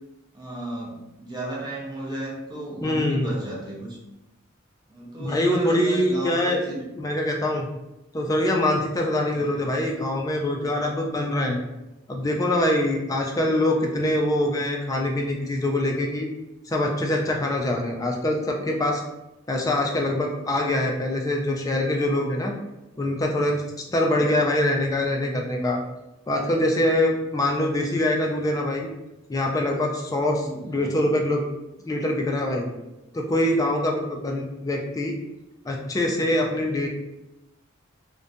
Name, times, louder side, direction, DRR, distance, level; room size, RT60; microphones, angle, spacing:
voice 1, 0.3-4.0 4.9-6.9 9.2-9.6 24.1-24.3 30.4-31.0, right 1 dB, 20° right, -5 dB, 0.6 m, -34 dB
voice 2, 2.8-3.3 5.2-6.6 7.0-7.7 8.1-11.6 12.1-16.3 16.7-19.0 19.5-22.5 23.0-23.6 23.9-25.8 26.3-28.9 29.3-31.5 31.8-32.7 33.1-35.2 35.6-36.9, left 1 dB, 15° left, 0 dB, 0.3 m, -24 dB
2.5 x 2.1 x 2.6 m, 0.94 s
head